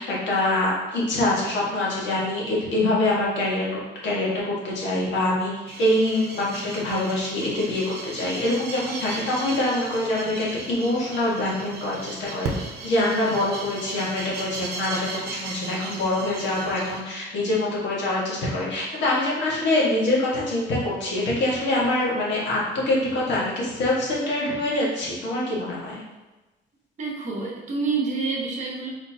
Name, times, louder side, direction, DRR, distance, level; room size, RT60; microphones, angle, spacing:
voice 1, 0.0-26.0, left 1 dB, 85° left, -5 dB, 1.5 m, -25 dB
sound 1, 5.7-17.0, right 3 dB, 65° right, 0.8 m, -36 dB
voice 2, 27.0-28.9, right 4 dB, 40° right, -2 dB, 1.0 m, -27 dB
4.3 x 4.2 x 2.8 m, 1.1 s
cardioid pair, 150°, 18 cm